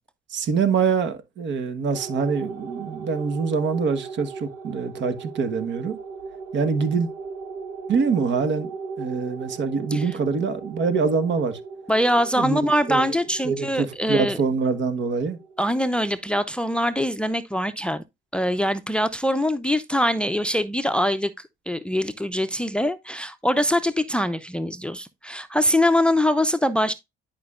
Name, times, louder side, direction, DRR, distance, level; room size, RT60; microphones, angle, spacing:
voice 1, 0.3-6.0 6.5-7.1 7.9-8.7 9.0-11.6 12.4-12.6 12.9-13.1 13.4-15.4, right 5 dB, 60° right, 1.3 m, -24 dB
sound 1, 1.9-16.7, right 5 dB, 85° right, 1.2 m, -38 dB
voice 2, 11.9-14.4 15.6-18.0 18.3-21.3 21.7-26.9, equal, 5° left, 0.5 m, -23 dB
10.5 x 5.1 x 2.4 m
cardioid pair, 95°, 21 cm